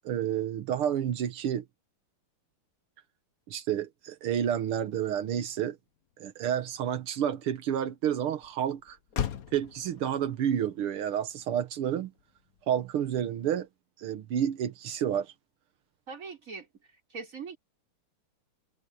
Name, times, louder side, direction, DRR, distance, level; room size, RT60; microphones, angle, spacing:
voice 1, 0.0-1.6 3.5-5.8 6.2-9.0 9.5-12.1 12.7-13.7 14.0-15.3, right 9 dB, 85° right, 2.0 m, -30 dB
Motor vehicle (road), 5.5-13.7, left 9 dB, 50° left, 1.3 m, -42 dB
voice 2, 16.1-16.7 17.1-17.6, right 5 dB, 35° right, 4.5 m, -40 dB
omnidirectional pair, 2.4 m